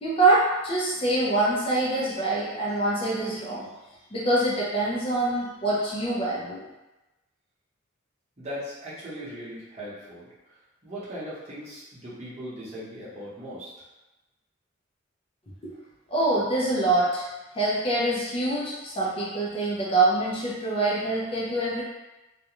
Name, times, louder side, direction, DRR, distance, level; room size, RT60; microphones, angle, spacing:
voice 1, 0.0-3.7 4.1-6.6 15.6-15.7 16.1-17.3 17.5-21.8, right 2 dB, 30° left, -6 dB, 0.5 m, -25 dB
voice 2, 8.4-10.3 10.8-13.7, equal, 35° right, -9 dB, 0.8 m, -38 dB
2.4 x 2.2 x 2.9 m, 1.1 s
head